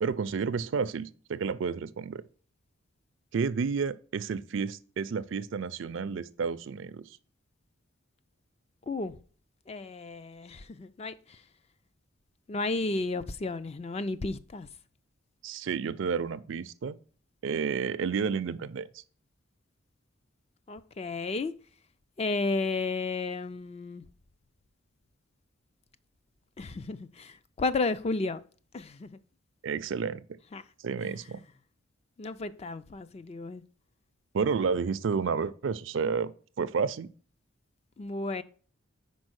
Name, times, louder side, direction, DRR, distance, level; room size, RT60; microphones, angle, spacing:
voice 1, 0.0-2.2 3.3-7.0 15.4-17.0 17.4-19.0 29.6-30.2 30.8-31.4 34.3-36.3 36.6-37.1, right 5 dB, 65° right, 0.4 m, -31 dB
voice 2, 8.9-9.2 9.7-11.4 12.5-14.7 20.7-21.5 22.2-24.0 26.6-28.4 28.7-29.2 30.5-30.6 31.0-31.2 32.2-33.6 38.0-38.4, left 3 dB, 30° left, 0.3 m, -33 dB
5.3 x 4.4 x 6.2 m
head